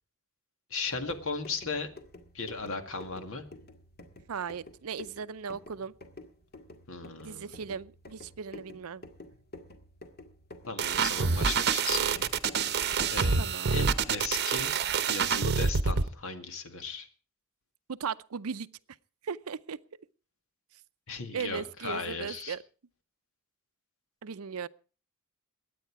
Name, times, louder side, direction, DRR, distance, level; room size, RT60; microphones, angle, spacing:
voice 1, 0.7-1.9 2.3-3.4 6.9-7.5 10.7-12.3 13.1-14.7 15.1-17.1 21.1-22.6, left 4 dB, 65° left, 2.1 m, -36 dB
sound 1, 0.8-13.4, left 1 dB, 45° left, 2.0 m, -50 dB
voice 2, 4.3-5.9 7.2-9.0 13.4-13.8 17.9-18.7 19.2-19.8 21.3-22.6 24.2-24.7, right 6 dB, 75° right, 0.6 m, -37 dB
sound 2, 10.8-16.1, right 5 dB, 50° right, 0.9 m, -27 dB
21.5 x 9.3 x 4.7 m
head